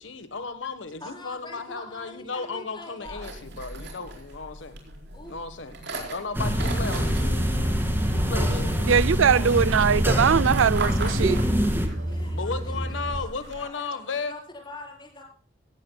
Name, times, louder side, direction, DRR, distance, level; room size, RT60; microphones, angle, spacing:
voice 1, 0.0-4.7 5.3-5.7 6.1-7.8 8.1-9.8 12.3-14.4, left 4 dB, 70° left, 1.3 m, -35 dB
voice 2, 1.0-3.3 5.1-5.4 12.1-15.2, left 2 dB, 25° left, 4.6 m, -44 dB
sound 1, 3.0-13.6, right 2 dB, 60° right, 4.4 m, -40 dB
sound 2, 6.3-11.9, equal, 10° right, 2.4 m, -25 dB
sound 3, 6.6-13.2, right 1 dB, 40° right, 4.6 m, -31 dB
voice 3, 8.9-11.4, right 7 dB, 85° right, 0.5 m, -21 dB
16.5 x 16.0 x 2.3 m
head